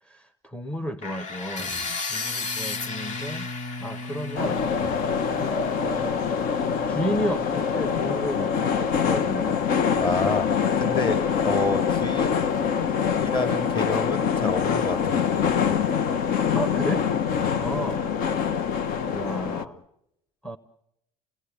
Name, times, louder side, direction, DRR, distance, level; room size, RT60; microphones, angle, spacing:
voice 1, 0.0-1.8 2.1-3.5 3.8-4.6 5.4-6.2 6.9-9.6 16.5-17.1 17.6-18.1 18.5-18.7 19.1-19.8 20.4-20.6, equal, 5° left, 10 dB, 0.9 m, -32 dB
sound 1, 1.0-6.9, left 4 dB, 50° left, 2.1 m, -35 dB
Bowed string instrument, 2.1-8.7, left 2 dB, 90° left, 2.5 m, -40 dB
sound 2, 4.4-19.7, left 7 dB, 65° left, 1.2 m, -25 dB
voice 2, 10.0-10.5 10.8-12.9 13.2-15.7 17.3-17.6, left 2 dB, 30° left, 8 dB, 2.5 m, -30 dB
29.0 x 18.5 x 8.2 m, 0.83 s
cardioid pair, 125°, 16 cm